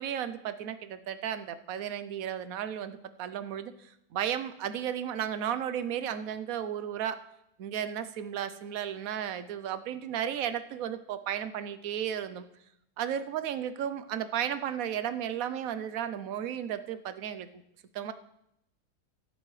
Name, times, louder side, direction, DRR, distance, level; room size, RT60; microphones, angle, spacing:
voice 1, 0.0-7.2 7.6-12.5 13.0-17.6 17.9-18.1, right 9 dB, 65° right, 12 dB, 1.1 m, -34 dB
15.5 x 11.5 x 3.2 m, 0.78 s
omnidirectional pair, 1.7 m